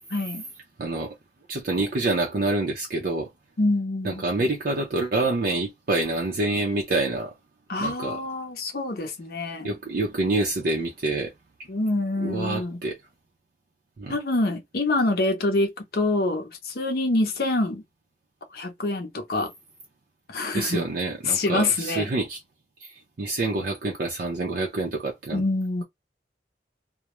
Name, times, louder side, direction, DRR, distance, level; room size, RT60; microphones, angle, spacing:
voice 1, 0.1-0.4 3.6-4.3 7.7-9.7 11.7-12.8 14.1-17.8 18.5-19.5 20.3-20.8 21.2-22.1 25.3-25.8, left 2 dB, 55° left, 0.6 m, -26 dB
voice 2, 0.8-1.2 1.5-3.3 4.0-7.3 7.8-8.2 9.6-11.3 12.2-13.0 14.0-14.2 20.5-22.4 22.8-25.4, right 2 dB, 50° right, 0.5 m, -27 dB
2.2 x 2.0 x 2.9 m
head